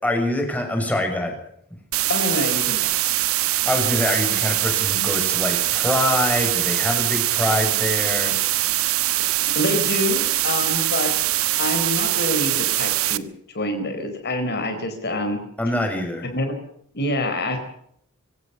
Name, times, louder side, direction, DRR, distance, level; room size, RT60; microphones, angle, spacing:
voice 1, 0.0-1.3 3.4-8.4 15.6-16.3, left 1 dB, 5° left, 2 dB, 6.9 m, -24 dB
sound 1, 1.9-13.2, right 15 dB, 70° right, 1.2 m, -22 dB
voice 2, 2.1-2.9 9.4-11.1 11.6-13.3 13.5-15.4 16.3-16.5 16.9-17.6, left 1 dB, 50° left, 6 dB, 4.4 m, -26 dB
25.0 x 17.0 x 7.0 m, 0.70 s
head